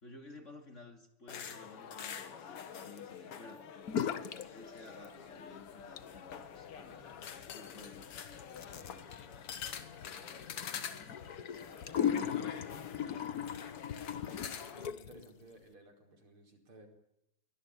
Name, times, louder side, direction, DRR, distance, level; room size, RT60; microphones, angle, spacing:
voice 1, 0.0-7.1 7.4-8.1, left 2 dB, 35° left, 6 dB, 2.8 m, -54 dB
sound 1, 1.3-14.9, left 8 dB, 90° left, 2.5 m, -46 dB
sound 2, 3.9-4.5 4.7-5.4 5.8-15.2, left 8 dB, 50° left, 1.4 m, -39 dB
voice 2, 4.1-4.5 7.0-7.3 8.7-10.7 11.3-13.1 13.7-14.0 14.4-16.9, right 2 dB, 70° right, 4 dB, 5.6 m, -60 dB
23.0 x 19.5 x 9.9 m, 0.79 s
omnidirectional pair, 2.4 m